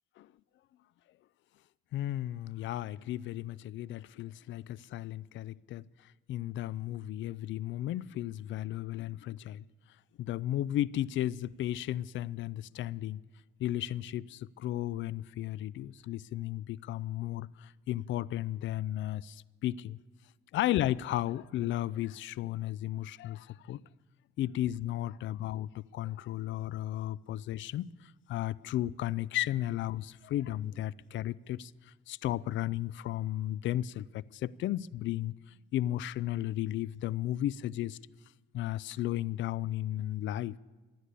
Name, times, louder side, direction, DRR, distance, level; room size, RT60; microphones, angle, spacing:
voice 1, 1.9-5.8 6.3-9.6 10.2-13.2 13.6-20.0 20.5-23.8 24.4-27.9 28.3-31.7 32.1-35.3 35.7-38.0 38.5-40.6, left 13 dB, 70° left, 0.4 m, -34 dB
15.0 x 11.5 x 8.2 m
cardioid pair, 90°, 20 cm